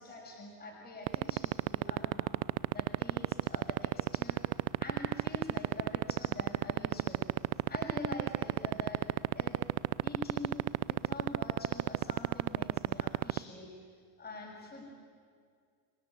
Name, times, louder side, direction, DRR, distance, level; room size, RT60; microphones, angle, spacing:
voice 1, 0.0-2.3 2.7-4.4 4.8-7.3 7.7-9.0 9.3-9.6 10.0-10.5 10.9-13.7 14.2-14.9, left 2 dB, 20° left, -2 dB, 6.2 m, -45 dB
sound 1, 1.1-13.4, right 27 dB, 55° right, 0.5 m, -28 dB
28.0 x 17.0 x 8.7 m, 2.1 s
supercardioid pair, 135°, 45 cm